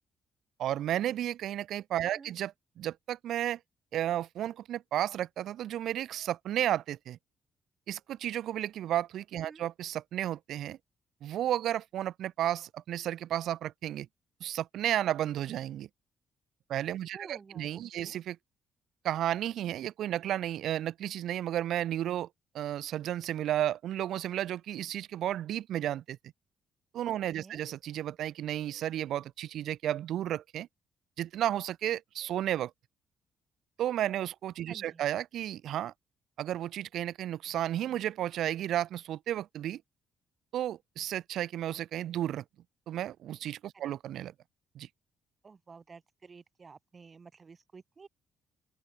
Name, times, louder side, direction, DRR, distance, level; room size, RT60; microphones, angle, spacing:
voice 1, 0.6-3.6 3.9-7.2 7.9-10.8 11.2-14.1 14.4-15.9 16.7-18.4 19.0-22.3 22.5-26.2 26.9-30.7 31.2-32.7 33.8-35.9 36.4-39.8 40.5-42.4 42.9-44.3 44.7-44.9, right 12 dB, 75° right, 0.7 m, -33 dB
voice 2, 2.0-2.3 9.3-9.6 17.1-18.2 27.3-27.6 34.7-35.0 43.8-43.9 45.4-48.1, right 5 dB, 35° right, 4.6 m, -51 dB
open air
cardioid pair, 90°, 0 cm